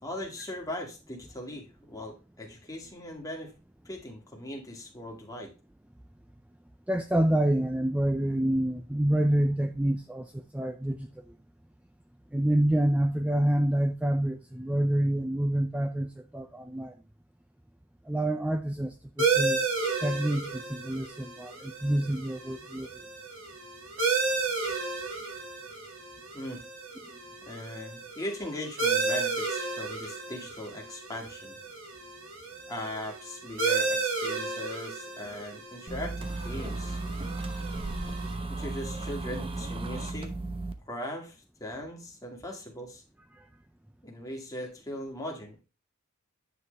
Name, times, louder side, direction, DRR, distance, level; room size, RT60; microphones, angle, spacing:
voice 1, 0.0-3.5 3.9-5.5 26.3-26.6 27.5-31.6 32.7-37.0 38.5-40.3 40.9-43.0 44.0-45.6, left 1 dB, 15° left, 2.1 m, -39 dB
voice 2, 6.9-11.4 12.3-17.0 18.1-19.7 20.0-23.1 39.3-39.4 43.3-43.5, right 1 dB, 5° right, 0.4 m, -27 dB
sound 1, 19.2-38.3, right 4 dB, 70° right, 2.1 m, -33 dB
sound 2, 35.9-40.7, right 2 dB, 25° right, 0.9 m, -35 dB
9.7 x 6.2 x 3.3 m
head